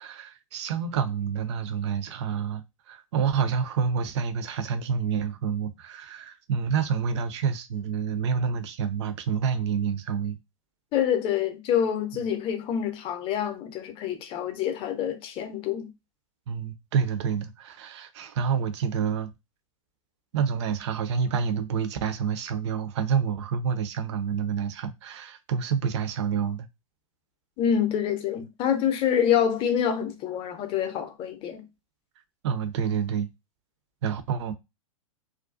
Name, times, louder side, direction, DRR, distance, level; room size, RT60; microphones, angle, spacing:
voice 1, 0.0-10.4 16.5-19.3 20.3-26.7 32.4-33.3 34.0-34.5, right 6 dB, 55° right, 0.5 m, -28 dB
voice 2, 10.9-15.9 27.6-31.6, left 9 dB, 30° left, 0.6 m, -26 dB
2.4 x 2.2 x 2.4 m
figure-of-eight pair, 105°, 18 cm